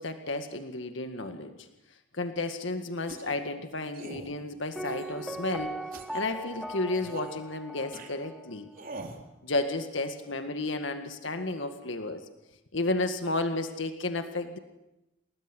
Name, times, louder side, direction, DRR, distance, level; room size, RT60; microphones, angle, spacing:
voice 1, 0.0-1.7 2.1-5.8 6.1-8.7 9.4-12.3 12.7-14.6, left 2 dB, 65° left, 7 dB, 2.0 m, -32 dB
sound 1, 3.1-3.4 3.9-4.3 4.9-5.4 5.9-6.2 7.0-7.4 7.9-8.1 8.7-9.2, right 2 dB, 45° right, 3.9 m, -43 dB
Piano, 4.8-8.5 8.8-8.9, right 1 dB, ahead, 1.5 m, -39 dB
29.5 x 20.0 x 9.9 m, 0.95 s
head